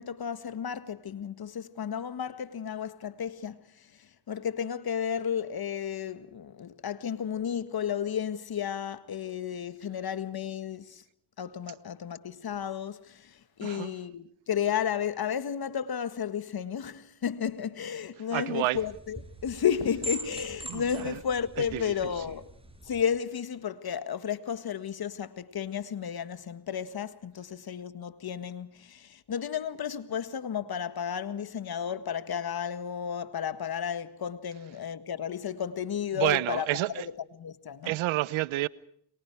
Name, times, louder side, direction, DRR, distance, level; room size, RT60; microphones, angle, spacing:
voice 1, 0.0-11.0 11.4-22.5 22.8-36.7 37.0-37.1 37.4-38.0, left 8 dB, 50° left, 1.8 m, -33 dB
voice 2, 13.6-13.9 18.3-18.8 20.7-21.2 21.6-21.9 36.1-37.1 37.8-38.7, right 17 dB, 75° right, 1.0 m, -29 dB
sound 1, 18.7-23.0, right 1 dB, 10° right, 7.9 m, -42 dB
29.5 x 23.5 x 4.7 m
supercardioid pair, 60°, 48 cm